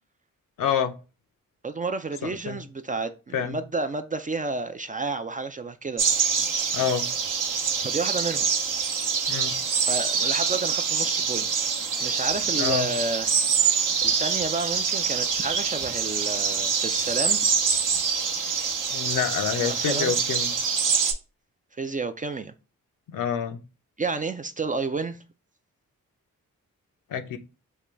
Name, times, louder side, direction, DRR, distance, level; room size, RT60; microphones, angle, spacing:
voice 1, 0.6-0.9 2.2-2.6 3.3-3.6 6.7-7.1 9.3-9.5 12.6-12.9 18.9-20.5 23.1-23.6 27.1-27.4, left 7 dB, 65° left, 0.6 m, -27 dB
voice 2, 1.6-6.0 7.8-8.5 9.8-11.5 12.0-13.3 14.0-17.4 19.6-20.1 21.8-22.5 24.0-25.2, right 3 dB, 25° right, 0.3 m, -30 dB
sound 1, 6.0-21.1, right 6 dB, 60° right, 0.7 m, -25 dB
3.7 x 2.2 x 3.1 m
supercardioid pair, 40°, 35 cm